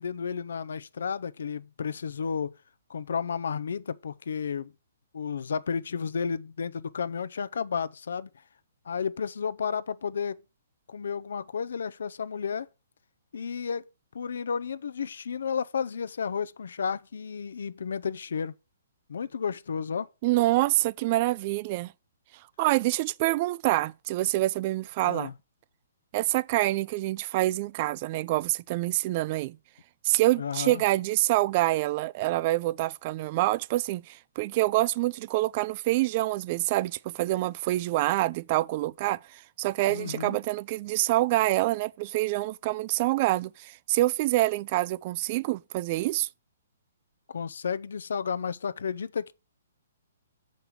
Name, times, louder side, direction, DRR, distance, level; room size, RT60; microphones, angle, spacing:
voice 1, 0.0-2.6 2.9-4.7 5.1-8.3 8.9-10.4 10.9-12.7 13.3-13.8 14.1-18.5 19.1-20.1 25.0-25.3 30.4-30.8 39.9-40.4 47.3-49.3, left 6 dB, 70° left, 0.5 m, -32 dB
voice 2, 20.2-21.9 22.6-25.3 26.1-29.6 30.0-46.3, right 17 dB, 40° right, 0.3 m, -26 dB
6.9 x 5.2 x 5.7 m
figure-of-eight pair, 130°, 0 cm